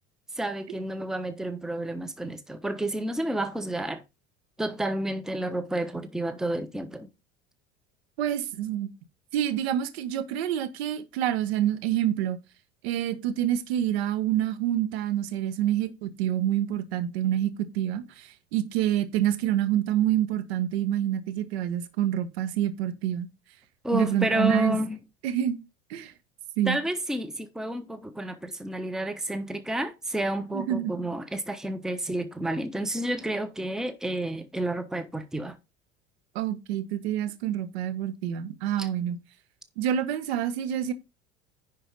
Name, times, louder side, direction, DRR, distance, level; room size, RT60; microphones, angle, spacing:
voice 1, 0.4-4.0 4.6-7.1 23.8-25.0 26.7-35.6 38.8-38.9, right 1 dB, ahead, 1.0 m, -30 dB
voice 2, 8.2-8.9 9.3-12.4 12.8-23.3 23.9-24.8 25.2-25.6 25.9-26.1 26.6-26.8 30.5-30.9 36.3-39.2 39.8-40.9, right 11 dB, 55° right, 1.2 m, -27 dB
10.0 x 4.6 x 5.2 m
figure-of-eight pair, 70°, 37 cm